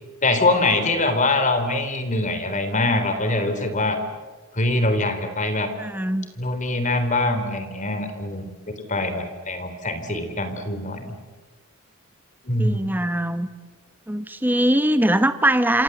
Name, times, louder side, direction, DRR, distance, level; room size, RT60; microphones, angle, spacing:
voice 1, 0.2-4.0 4.5-5.7 6.4-11.2 12.4-12.9, left 2 dB, 35° left, 8 dB, 3.6 m, -23 dB
voice 2, 5.8-6.3 12.6-13.5 14.1-15.8, right 1 dB, 10° right, 10 dB, 1.1 m, -21 dB
28.0 x 26.5 x 8.0 m, 1.3 s
head